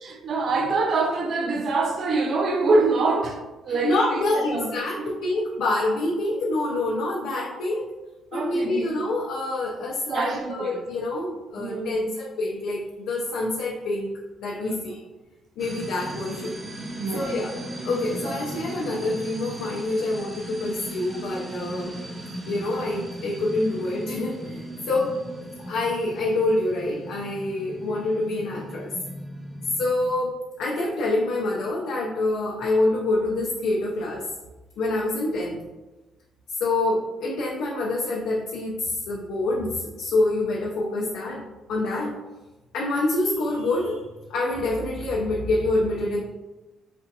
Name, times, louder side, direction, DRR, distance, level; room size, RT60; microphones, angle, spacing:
voice 1, 0.0-3.4 3.6-3.9 4.5-4.7 8.3-8.9 10.1-10.8 11.6-12.1 14.6-14.7 17.0-17.3 18.3-18.4, right 3 dB, 55° right, 0.6 m, -25 dB
voice 2, 3.7-7.9 8.3-14.1 14.4-15.0 15.6-16.6 17.1-17.5 17.8-21.9 22.5-25.2 25.6-28.9 29.7-34.3 34.8-35.6 36.5-41.4 41.7-42.2 42.7-44.0 44.3-46.2, left 2 dB, 85° left, 0.5 m, -26 dB
sound 1, 15.6-30.1, right 1 dB, 15° right, 0.6 m, -37 dB
4.1 x 2.5 x 2.7 m
cardioid pair, 90°, 0 cm